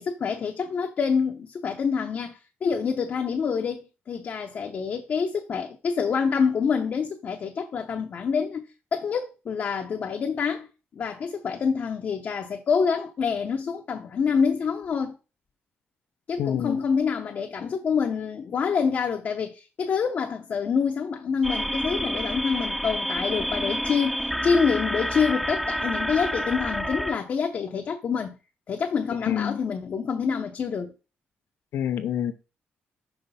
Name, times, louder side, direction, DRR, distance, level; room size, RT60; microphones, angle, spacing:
voice 1, 0.0-10.7 10.9-15.2 16.3-28.4 28.7-30.9, left 6 dB, 50° left, 0.7 m, -27 dB
voice 2, 16.4-16.8 29.2-29.6 31.7-32.3, left 10 dB, 85° left, 0.7 m, -27 dB
sound 1, 21.4-27.2, equal, ahead, 0.3 m, -29 dB
5.6 x 3.2 x 5.5 m
cardioid pair, 120°, 4 cm